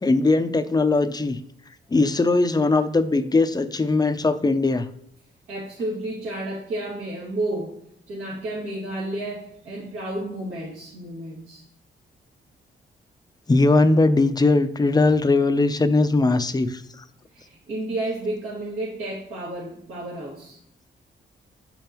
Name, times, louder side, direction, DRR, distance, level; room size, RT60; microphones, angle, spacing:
voice 1, 0.0-1.4 1.9-4.9 13.5-16.8, left 3 dB, 20° left, 10 dB, 0.5 m, -20 dB
voice 2, 5.5-7.7 8.1-11.6 17.3-20.6, right 1 dB, 80° right, -8 dB, 2.1 m, -31 dB
6.7 x 5.4 x 3.0 m, 0.72 s
cardioid pair, 70°, 20 cm